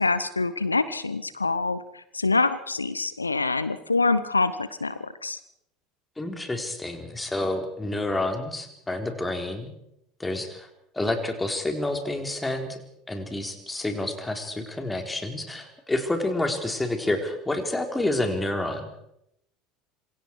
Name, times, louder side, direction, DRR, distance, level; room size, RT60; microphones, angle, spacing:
voice 1, 0.0-5.4, left 3 dB, 85° left, 15 dB, 0.9 m, -25 dB
voice 2, 6.2-9.7 10.2-10.7 10.9-12.8 13.1-18.9, left 2 dB, 10° left, 4 dB, 4.0 m, -29 dB
27.0 x 23.5 x 4.8 m, 0.79 s
figure-of-eight pair, 70°, 0 cm